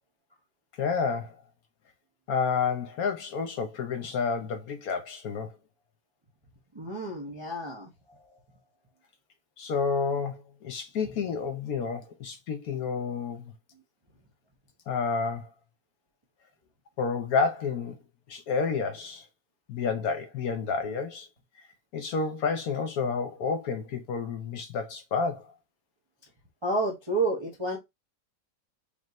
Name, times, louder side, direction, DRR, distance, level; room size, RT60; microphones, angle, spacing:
voice 1, 0.8-1.4 2.3-5.5 9.6-13.5 14.9-15.5 17.0-18.0 18.3-19.3 19.7-21.3 21.9-25.5, left 5 dB, 65° left, 1.1 m, -30 dB
voice 2, 6.7-7.9 26.6-27.8, right 2 dB, 30° right, 0.5 m, -30 dB
5.2 x 2.6 x 3.0 m
omnidirectional pair, 1.9 m